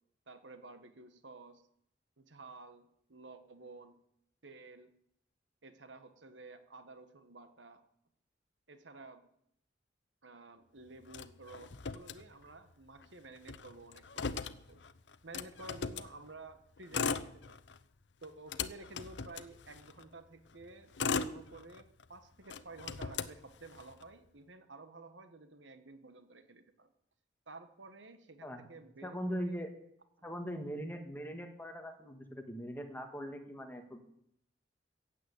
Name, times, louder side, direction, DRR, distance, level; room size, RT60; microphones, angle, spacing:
voice 1, 0.3-1.6 2.2-4.0 4.4-4.9 5.6-7.8 8.7-9.3 10.2-14.8 15.2-17.6 18.2-26.9 27.5-29.6, right 2 dB, 90° right, 9 dB, 1.5 m, -52 dB
Motor vehicle (road), 11.1-12.7 13.0-13.1 13.4-16.1 16.8-17.8 18.2-20.0 20.6-22.0 22.5-24.0, left 5 dB, 70° left, 0.8 m, -38 dB
voice 2, 29.0-29.7 30.2-34.1, equal, 10° left, 5 dB, 1.8 m, -41 dB
16.0 x 8.5 x 8.2 m, 0.72 s
head